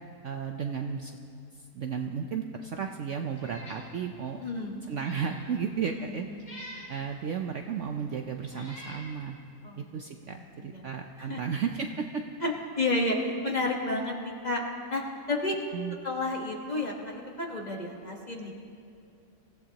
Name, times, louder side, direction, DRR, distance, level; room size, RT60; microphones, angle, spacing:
voice 1, 0.2-1.1 1.7-4.4 4.9-6.3 6.9-9.4 9.9-12.2 15.7-16.0, right 6 dB, 60° right, 4 dB, 0.8 m, -33 dB
Meow, 3.3-3.8 4.3-4.4 4.9-5.4 6.4-6.9 7.8-7.9 8.5-9.1, left 1 dB, 70° left, 4.5 m, -45 dB
voice 2, 4.4-4.8 5.9-6.6 9.6-9.8 10.2-10.9 11.2-11.4 12.4-14.6 14.9-15.6 16.0-18.5, left 2 dB, 30° left, -1 dB, 1.3 m, -31 dB
25.0 x 15.5 x 2.9 m, 2.5 s
omnidirectional pair, 1.7 m